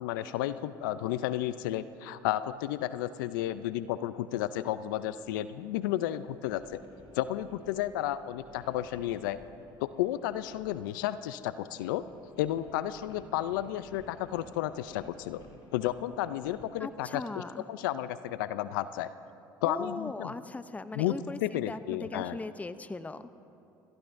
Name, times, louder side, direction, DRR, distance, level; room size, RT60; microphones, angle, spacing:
voice 1, 0.0-6.8 7.1-9.4 9.8-12.1 12.4-15.4 15.7-17.4 17.7-19.1 19.6-20.3 20.9-21.1 21.4-22.4, left 13 dB, 80° left, 14 dB, 0.4 m, -32 dB
sound 1, 5.2-11.3 11.6-16.7, left 1 dB, 55° left, 3.5 m, -56 dB
voice 2, 16.8-17.7 19.6-23.2, left 3 dB, 15° left, 13 dB, 0.6 m, -39 dB
27.5 x 15.0 x 2.6 m, 2.8 s
hypercardioid pair, 70°, 11 cm